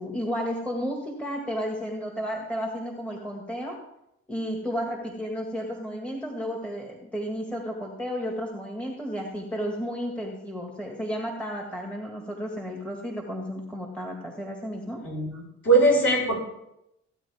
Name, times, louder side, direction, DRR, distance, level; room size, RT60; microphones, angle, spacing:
voice 1, 0.0-3.8 4.3-15.1, equal, 5° left, 1 dB, 1.9 m, -32 dB
voice 2, 15.0-16.4, right 2 dB, 45° left, -2 dB, 5.4 m, -21 dB
15.5 x 8.8 x 3.6 m, 0.83 s
cardioid pair, 90°, 30 cm